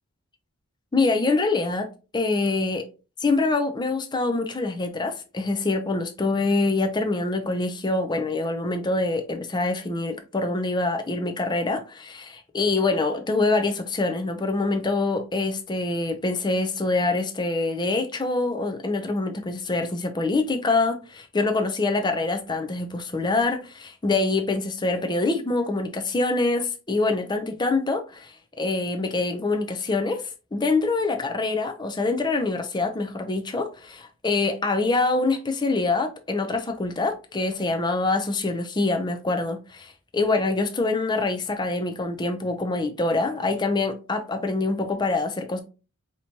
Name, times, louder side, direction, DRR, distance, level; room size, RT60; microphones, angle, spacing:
voice 1, 0.9-1.9 2.1-2.9 3.2-45.6, left 3 dB, 20° left, 0.5 m, -25 dB
4.8 x 2.9 x 2.7 m
head